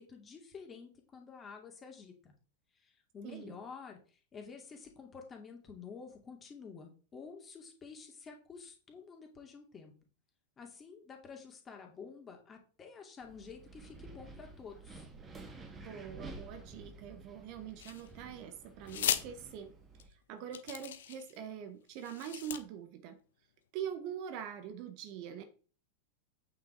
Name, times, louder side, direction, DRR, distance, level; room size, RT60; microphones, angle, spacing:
voice 1, 0.0-2.3 2.7-9.9 10.6-15.1, left 5 dB, 20° left, 3 dB, 2.6 m, -50 dB
voice 2, 3.2-3.6 15.8-19.7 20.0-23.2 23.7-25.4, right 8 dB, 45° right, 8 dB, 1.3 m, -43 dB
Wind, 13.2-20.1, right 3 dB, 20° right, 2.1 m, -51 dB
sound 1, 17.8-18.3 18.9-19.2 20.0-20.1 20.5-21.4 22.0-22.6, left 10 dB, 60° left, 0.9 m, -36 dB
8.6 x 6.1 x 4.6 m, 0.38 s
figure-of-eight pair, 90°, 0 cm